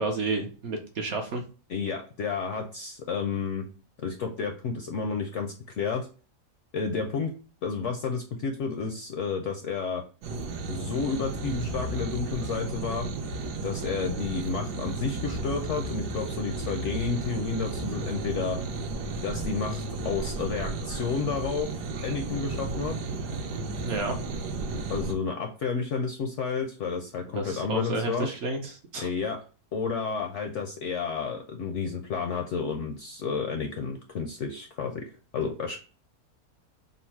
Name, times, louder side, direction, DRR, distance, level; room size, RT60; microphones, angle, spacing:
voice 1, 0.0-1.4 23.8-24.2 27.3-29.1, right 3 dB, 60° right, 4 dB, 0.8 m, -31 dB
voice 2, 1.7-3.7 4.0-6.1 6.7-7.3 7.6-10.0 10.7-13.1 13.6-18.6 19.2-21.7 22.0-22.9 24.9-28.3 29.0-29.4 29.7-35.0 35.3-35.8, left 5 dB, 70° left, 4 dB, 0.7 m, -31 dB
sound 1, 10.2-25.1, right 3 dB, 80° right, 1.2 m, -33 dB
3.8 x 2.0 x 4.4 m, 0.37 s
omnidirectional pair, 1.7 m